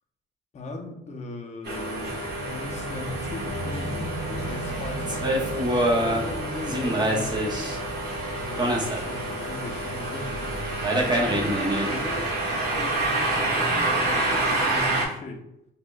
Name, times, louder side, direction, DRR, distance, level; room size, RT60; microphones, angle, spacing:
voice 1, 0.5-2.2 2.5-5.5 5.9-7.8 8.3-10.5 11.2-15.4, left 2 dB, 35° left, 2 dB, 0.7 m, -38 dB
sound 1, 1.6-15.1, right 2 dB, 55° right, 1.3 m, -29 dB
sound 2, 1.9-13.0, right 1 dB, 85° left, 0.6 m, -39 dB
sound 3, 4.5-14.4, right 1 dB, 20° right, 0.8 m, -28 dB
5.0 x 2.3 x 2.3 m, 0.81 s
cardioid pair, 90°, 20 cm